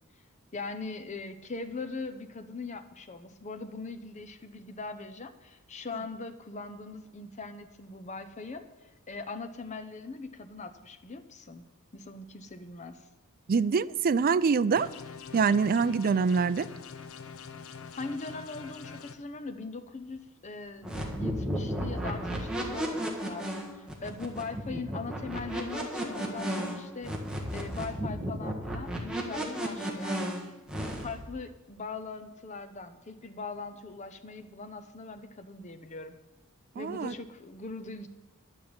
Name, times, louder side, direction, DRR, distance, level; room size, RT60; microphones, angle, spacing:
voice 1, 0.5-11.6 11.9-13.0 17.9-27.2 27.5-30.5 31.0-36.2 36.7-38.1, left 3 dB, 35° left, 0.8 m, -41 dB
voice 2, 13.5-14.9 15.3-16.7 36.8-37.1, right 5 dB, 45° right, 0.4 m, -25 dB
sound 1, 14.8-19.1, left 5 dB, 80° left, 0.7 m, -44 dB
sound 2, 20.8-31.2, equal, 5° right, 1.6 m, -33 dB
11.0 x 6.1 x 8.7 m
head